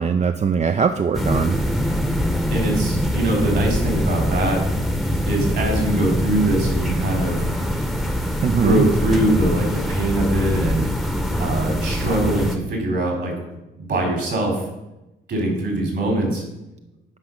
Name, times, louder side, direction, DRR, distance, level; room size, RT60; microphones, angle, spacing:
voice 1, 0.0-1.6 8.4-8.8, right 6 dB, 35° right, 9 dB, 0.5 m, -20 dB
sound 1, 1.1-12.6, equal, ahead, 0.9 m, -23 dB
voice 2, 2.5-4.6 5.2-7.4 8.4-10.8 11.4-13.3 13.8-14.6 15.3-16.4, right 1 dB, 60° right, 1 dB, 3.8 m, -22 dB
9.8 x 4.9 x 6.4 m, 0.94 s
cardioid pair, 90°, 20 cm